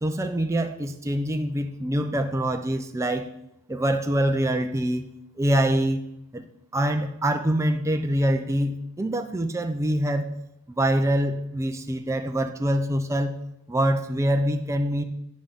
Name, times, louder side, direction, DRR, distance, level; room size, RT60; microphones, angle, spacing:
voice 1, 0.0-3.3 3.7-5.1 5.4-6.0 6.3-6.4 6.7-10.3 10.7-13.4 13.7-15.0, right 1 dB, 15° right, 6 dB, 0.4 m, -25 dB
11.0 x 5.1 x 3.5 m, 0.81 s
head